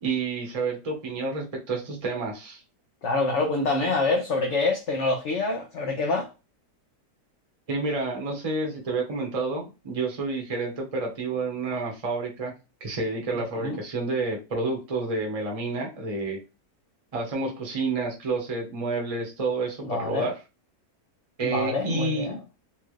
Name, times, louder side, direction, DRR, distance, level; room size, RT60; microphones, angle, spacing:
voice 1, 0.0-2.6 7.7-12.5 12.8-16.4 17.1-20.3 21.4-22.3, right 3 dB, 25° right, 1.0 m, -29 dB
voice 2, 3.0-6.3 13.6-13.8 19.8-20.3 21.4-22.4, left 3 dB, 60° left, 0.8 m, -26 dB
4.3 x 2.4 x 3.2 m
omnidirectional pair, 1.8 m